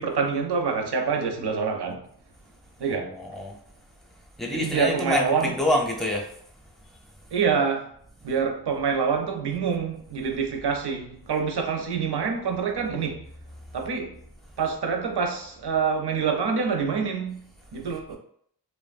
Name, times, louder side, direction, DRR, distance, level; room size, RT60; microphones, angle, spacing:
voice 1, 0.0-2.0 2.8-3.1 4.5-5.5 7.3-7.9 8.2-13.3 13.7-14.2 14.6-17.4 17.7-18.2, right 5 dB, 90° right, 0.5 m, -26 dB
voice 2, 2.9-3.6 4.4-6.3, left 1 dB, ahead, 0.6 m, -27 dB
2.9 x 2.0 x 2.4 m
wide cardioid pair, 50°, 39 cm